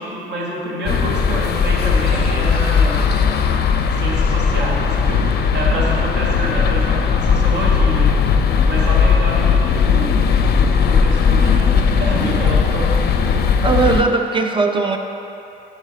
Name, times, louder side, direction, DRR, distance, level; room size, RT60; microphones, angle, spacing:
voice 1, 0.0-3.1 3.9-8.1 8.7-10.1 10.7-12.9, right 1 dB, 60° right, -3 dB, 1.4 m, -27 dB
sound 1, 0.9-14.0, left 6 dB, 55° left, 0.5 m, -17 dB
voice 2, 13.6-15.0, right 4 dB, 25° right, 4 dB, 0.5 m, -18 dB
5.4 x 4.9 x 5.0 m, 2.9 s
cardioid pair, 90°, 20 cm